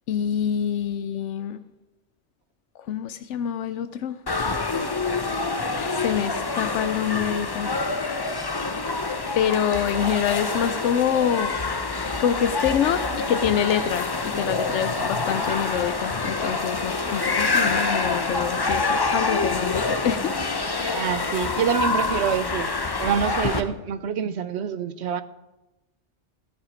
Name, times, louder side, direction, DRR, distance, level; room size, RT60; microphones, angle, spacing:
voice 1, 0.1-1.6 2.9-4.2 5.7-7.7 9.3-11.6 12.2-20.6, left 9 dB, 85° left, 11 dB, 0.9 m, -26 dB
sound 1, 4.3-23.6, left 3 dB, 25° left, 0.6 m, -26 dB
voice 2, 20.9-22.7 23.0-25.2, right 7 dB, 70° right, 14 dB, 0.9 m, -26 dB
13.5 x 10.5 x 5.1 m, 1.0 s
omnidirectional pair, 1.2 m